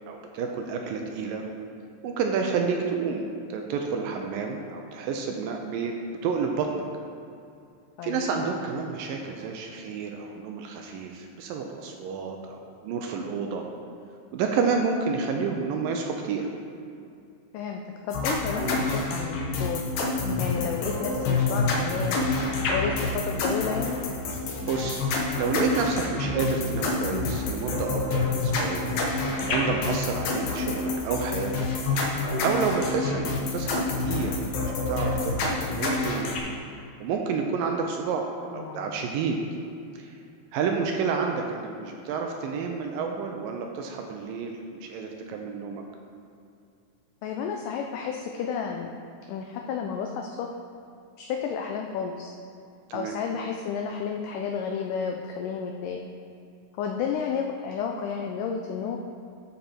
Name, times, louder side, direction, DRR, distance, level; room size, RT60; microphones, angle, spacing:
voice 1, 0.1-1.4 2.0-5.9 6.2-6.8 8.0-13.7 14.3-16.4 24.6-25.0 25.4-31.7 32.1-36.4 37.0-38.3 38.5-39.4 39.9-40.1 40.5-45.8 52.9-53.2, right 5 dB, 80° right, 3 dB, 2.2 m, -30 dB
voice 2, 18.1-19.8 20.4-24.0 38.5-38.9 47.2-49.0 49.3-50.5 51.2-52.3 52.9-56.0 56.8-59.0, left 6 dB, 85° left, 2 dB, 1.8 m, -31 dB
sound 1, 18.1-36.4, left 3 dB, 70° left, 1.8 m, -28 dB
12.0 x 5.4 x 4.4 m, 2.5 s
omnidirectional pair, 4.4 m